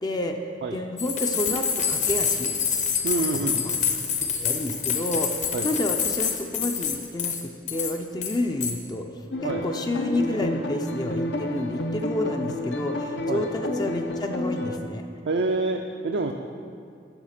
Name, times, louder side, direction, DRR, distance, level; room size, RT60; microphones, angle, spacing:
voice 1, 0.0-2.5 3.6-3.8 4.2-15.0, left 1 dB, 25° left, 4 dB, 0.4 m, -30 dB
sound 1, 1.0-7.4 7.7-7.9 8.2-8.7, left 6 dB, 45° left, 0.8 m, -26 dB
voice 2, 3.0-3.6 5.5-5.7 9.4-9.6 13.3-13.5 15.3-16.3, right 3 dB, 75° right, 3 dB, 0.4 m, -27 dB
sound 2, 9.3-14.8, left 1 dB, 75° left, 0.7 m, -30 dB
7.2 x 5.7 x 6.5 m, 2.3 s
head